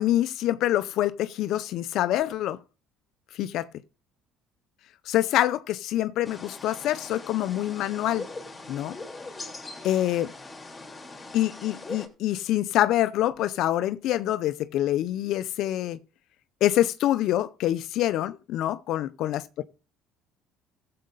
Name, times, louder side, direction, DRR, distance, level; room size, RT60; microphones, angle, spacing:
voice 1, 0.0-2.6 3.3-3.7 5.1-8.3 8.7-9.0 9.8-10.3 11.3-16.0 16.6-19.6, left 13 dB, 70° left, 0.6 m, -26 dB
sound 1, 6.2-12.1, left 3 dB, 20° left, 3.1 m, -41 dB
15.5 x 7.6 x 3.9 m
supercardioid pair, 95°, 0 cm